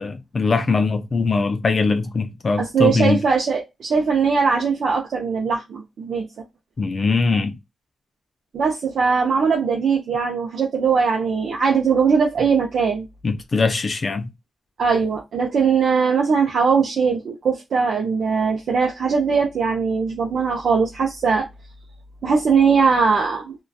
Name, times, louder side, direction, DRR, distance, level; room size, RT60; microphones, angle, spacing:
voice 1, 0.0-3.2 6.8-7.6 13.2-14.3, left 4 dB, 40° left, 0.3 m, -21 dB
voice 2, 2.6-6.3 8.5-13.1 14.8-21.5 22.2-23.5, right 5 dB, 75° right, 0.5 m, -20 dB
2.6 x 2.2 x 2.3 m
cardioid pair, 105°, 0 cm